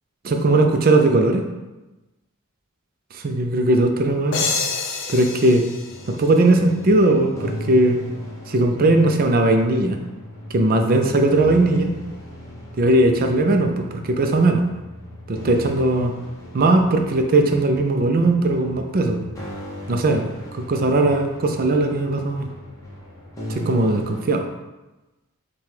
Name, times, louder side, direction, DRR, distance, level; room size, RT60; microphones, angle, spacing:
voice 1, 0.2-1.4 3.1-4.5 5.1-5.7 6.1-8.0 8.5-10.0 10.5-11.9 12.8-14.6 15.3-16.1 16.5-19.2 19.9-22.5 23.5-24.5, right 2 dB, 40° right, 5 dB, 0.4 m, -18 dB
sound 1, 4.3-7.0, left 4 dB, 55° left, 0.5 m, -28 dB
sound 2, 5.9-24.3, equal, 15° left, 0.8 m, -37 dB
5.9 x 2.3 x 3.3 m, 1.1 s
head